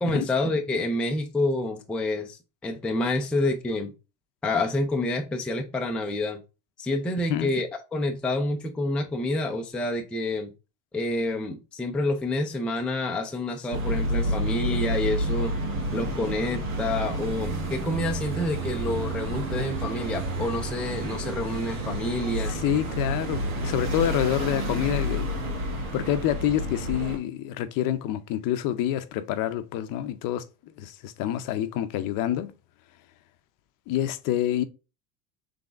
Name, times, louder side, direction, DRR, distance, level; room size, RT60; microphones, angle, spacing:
voice 1, 0.0-3.9 4.4-6.4 6.8-10.5 10.9-15.5 15.9-22.5, left 2 dB, 5° left, 0.4 m, -28 dB
sound 1, 13.7-27.2, right 1 dB, 85° right, 1.8 m, -29 dB
voice 2, 22.4-25.4 25.9-30.4 30.8-32.5 33.9-34.6, left 11 dB, 50° left, 0.6 m, -27 dB
3.9 x 3.4 x 3.3 m
supercardioid pair, 115°, 42 cm